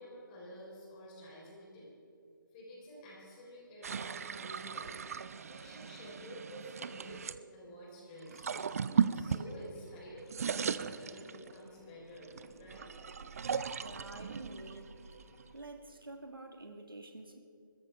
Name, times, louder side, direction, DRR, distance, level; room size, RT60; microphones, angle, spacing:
voice 1, 0.0-1.9 2.5-5.0 5.5-8.6 8.9-12.9, equal, 25° left, -3 dB, 4.1 m, -50 dB
sound 1, 3.8-7.4 8.2-9.9 10.2-11.7 12.2-15.6, right 6 dB, 45° right, 0.4 m, -37 dB
sound 2, 9.7-15.5, right 3 dB, 15° right, 3.3 m, -58 dB
voice 2, 13.8-15.0 15.5-17.4, right 2 dB, 85° right, 5 dB, 1.6 m, -48 dB
21.5 x 14.0 x 3.5 m, 2.5 s
figure-of-eight pair, 150°, 11 cm